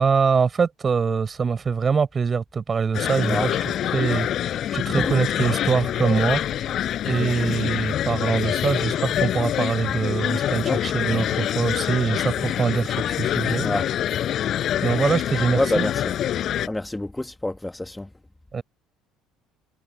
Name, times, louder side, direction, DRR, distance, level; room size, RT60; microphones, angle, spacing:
voice 1, 0.0-3.5 3.8-6.6 7.0-13.7 14.8-15.9 18.5-18.6, right 5 dB, 30° right, 4.7 m, -23 dB
sound 1, 2.9-16.7, left 11 dB, 50° left, 5.6 m, -25 dB
voice 2, 15.3-15.9 16.6-18.1, left 1 dB, 10° left, 1.8 m, -27 dB
figure-of-eight pair, 60°, 0 cm